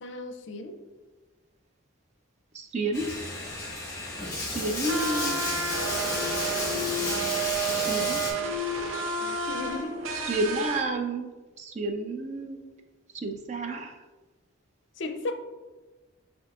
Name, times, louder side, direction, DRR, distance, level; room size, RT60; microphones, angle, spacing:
voice 1, 0.0-0.8 9.2-9.9 15.0-15.3, left 2 dB, 65° left, 7 dB, 0.4 m, -35 dB
voice 2, 2.5-3.0 4.5-5.5 7.7-8.2 10.3-11.3 11.6-12.6 13.1-13.9, right 2 dB, 35° right, 4 dB, 0.4 m, -30 dB
Bathtub (filling or washing), 2.9-8.3, left 2 dB, 15° left, 1.2 m, -32 dB
sound 1, 4.9-10.8, right 2 dB, 80° right, 0.6 m, -30 dB
8.1 x 2.7 x 2.4 m, 1.2 s
head